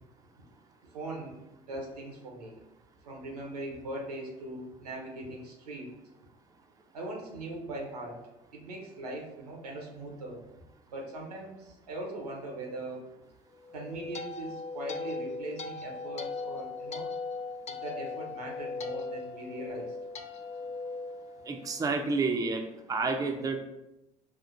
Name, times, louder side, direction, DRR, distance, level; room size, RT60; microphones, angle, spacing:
voice 1, 0.9-1.4 1.7-2.6 3.0-5.9 6.9-8.2 8.5-10.4 10.9-13.1 13.7-17.1 17.7-20.0, right 1 dB, 85° right, 0 dB, 0.8 m, -40 dB
sound 1, 13.6-22.0, left 4 dB, 35° left, 0.4 m, -39 dB
voice 2, 21.5-22.6 22.9-23.6, right 4 dB, 20° right, 3 dB, 0.5 m, -29 dB
5.9 x 2.5 x 2.5 m, 0.93 s
hypercardioid pair, 60°, 19 cm